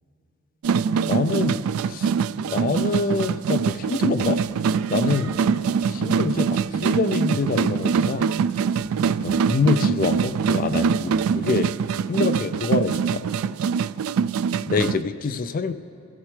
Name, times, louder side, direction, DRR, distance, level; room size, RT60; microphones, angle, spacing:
sound 1, 0.6-15.0, right 6 dB, 80° right, 0.3 m, -23 dB
voice 1, 1.1-2.1 2.4-4.4 4.9-5.3 5.8-8.3 9.2-11.7 12.1-13.3 14.7-15.7, left 4 dB, 40° left, 11 dB, 0.3 m, -25 dB
27.0 x 14.5 x 3.3 m, 2.7 s
head